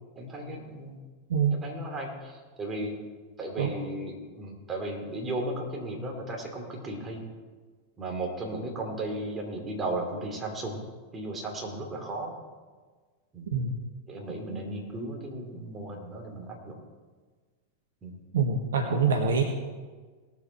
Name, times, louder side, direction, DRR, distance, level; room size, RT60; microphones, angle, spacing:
voice 1, 0.2-1.0 1.5-2.9 3.4-7.2 8.0-10.8 11.1-12.3 13.3-13.5 14.1-16.7 18.0-18.2, right 1 dB, 20° right, 1 dB, 2.7 m, -35 dB
voice 2, 18.3-19.4, right 5 dB, 65° right, 4 dB, 1.1 m, -25 dB
18.5 x 7.5 x 4.5 m, 1.4 s
figure-of-eight pair, 90°, 0 cm